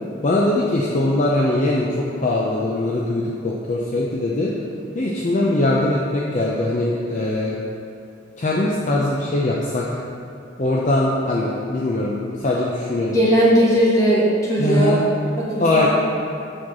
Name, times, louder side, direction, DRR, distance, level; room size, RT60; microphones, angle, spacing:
voice 1, 0.2-4.5 4.9-7.6 8.4-9.8 10.6-13.2 14.6-15.0 15.6-15.9, left 2 dB, 40° left, -3 dB, 0.6 m, -21 dB
voice 2, 13.1-15.0 15.4-15.9, right 1 dB, 15° left, -7 dB, 1.8 m, -18 dB
7.3 x 4.5 x 6.1 m, 2.7 s
head